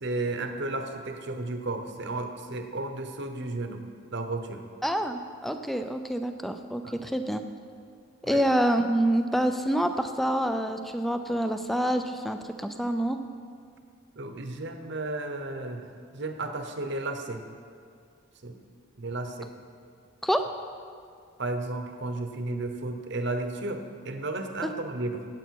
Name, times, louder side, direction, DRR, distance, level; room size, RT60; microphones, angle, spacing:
voice 1, 0.0-3.8 4.1-4.6 6.8-7.0 8.2-8.4 14.1-17.4 18.4-18.6 19.0-19.5 21.4-25.3, right 2 dB, 50° right, 6 dB, 0.9 m, -33 dB
voice 2, 4.8-7.4 8.2-13.2 20.2-20.4 24.6-24.7, right 1 dB, ahead, 7 dB, 0.4 m, -27 dB
17.0 x 7.9 x 4.6 m, 2.2 s
head